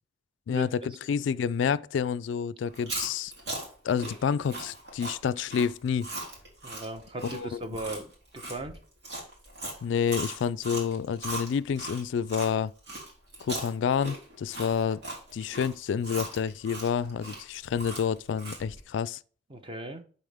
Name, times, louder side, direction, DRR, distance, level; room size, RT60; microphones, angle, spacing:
voice 1, 0.5-3.3 3.8-6.1 7.2-7.6 9.8-12.7 13.4-15.0 15.3-19.2, left 7 dB, 75° left, 0.3 m, -29 dB
Chewing mastication, 2.7-12.5 12.9-18.8, right 2 dB, 65° right, 3.2 m, -39 dB
voice 2, 6.6-8.8 19.5-20.0, right 1 dB, 30° right, 0.9 m, -37 dB
11.5 x 4.2 x 3.5 m
head